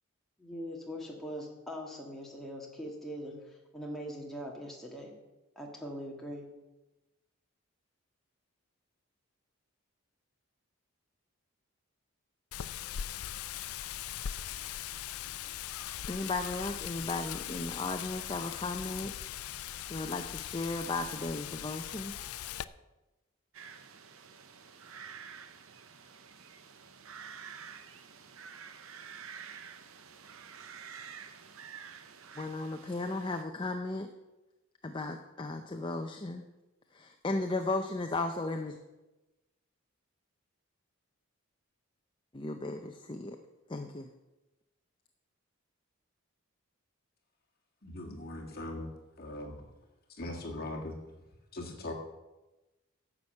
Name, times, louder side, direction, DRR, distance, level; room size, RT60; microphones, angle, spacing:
voice 1, 0.4-5.1 5.6-6.5, equal, ahead, -2 dB, 1.6 m, -42 dB
Wind, 12.5-22.6, left 11 dB, 80° left, 0.4 m, -40 dB
voice 2, 16.1-19.1 19.9-22.1 32.4-34.1 34.8-36.4 36.9-38.7 42.3-43.4 43.7-44.1, left 2 dB, 20° left, 5 dB, 0.5 m, -35 dB
sound 1, 23.5-33.4, right 7 dB, 70° right, 0.8 m, -49 dB
voice 3, 47.8-48.9 49.2-49.6 50.2-51.0 51.5-51.9, left 1 dB, 45° left, 0 dB, 1.8 m, -40 dB
10.5 x 7.2 x 6.5 m, 1.1 s
head